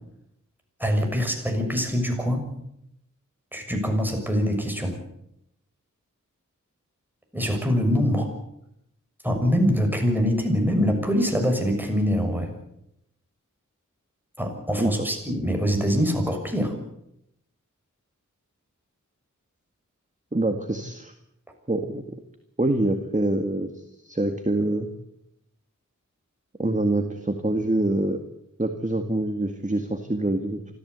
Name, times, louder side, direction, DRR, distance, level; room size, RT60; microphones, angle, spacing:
voice 1, 0.8-2.5 3.5-5.0 7.3-8.3 9.2-12.5 14.4-16.7, equal, 5° right, 3 dB, 6.6 m, -24 dB
voice 2, 20.3-21.1 21.7-22.2 22.6-24.9 26.6-28.2 28.6-30.6, right 1 dB, 25° right, 6 dB, 2.0 m, -25 dB
25.5 x 14.5 x 8.2 m, 0.81 s
wide cardioid pair, 45°, 32 cm